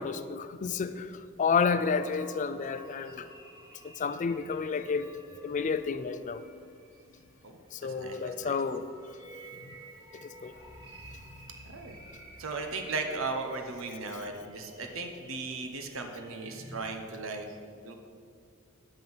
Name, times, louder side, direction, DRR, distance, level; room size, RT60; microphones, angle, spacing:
voice 1, 0.0-3.3 3.8-5.1 5.4-6.4 7.7-8.8 10.2-10.5, left 5 dB, 35° left, 12 dB, 0.4 m, -30 dB
sound 1, 1.7-16.8, right 1 dB, 20° right, 1.9 m, -52 dB
voice 2, 7.4-8.6 11.6-12.0 12.4-17.5 17.8-18.0, right 3 dB, 75° right, 5 dB, 0.9 m, -37 dB
9.1 x 5.5 x 7.7 m, 2.2 s
head